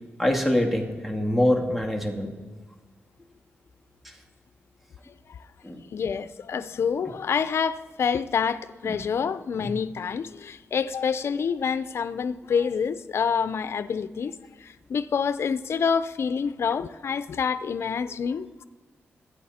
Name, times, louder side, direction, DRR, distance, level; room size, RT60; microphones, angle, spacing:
voice 1, 0.2-2.3 4.0-4.1 5.6-5.8 7.0-7.1 8.9-9.0 9.6-9.7, left 1 dB, ahead, 2.2 m, -25 dB
voice 2, 5.9-14.3 14.6-18.6, left 6 dB, 65° left, 0.6 m, -27 dB
24.0 x 8.8 x 4.3 m
cardioid pair, 85°, 5 cm